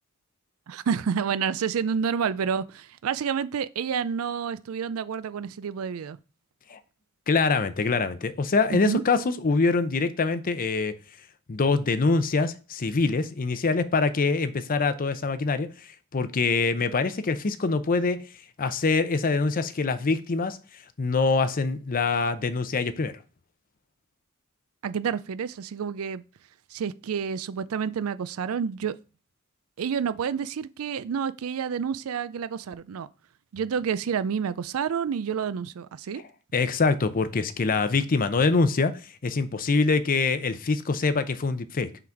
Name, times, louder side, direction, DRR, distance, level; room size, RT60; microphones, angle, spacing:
voice 1, 0.7-6.2 8.7-9.0 24.8-26.2 26.7-28.9 29.8-33.1 33.5-36.2, right 7 dB, 70° right, 0.4 m, -29 dB
voice 2, 7.3-10.9 11.5-15.7 16.1-18.3 18.6-20.6 21.0-23.2 36.5-41.9, left 4 dB, 40° left, 0.6 m, -24 dB
5.9 x 4.0 x 4.5 m
head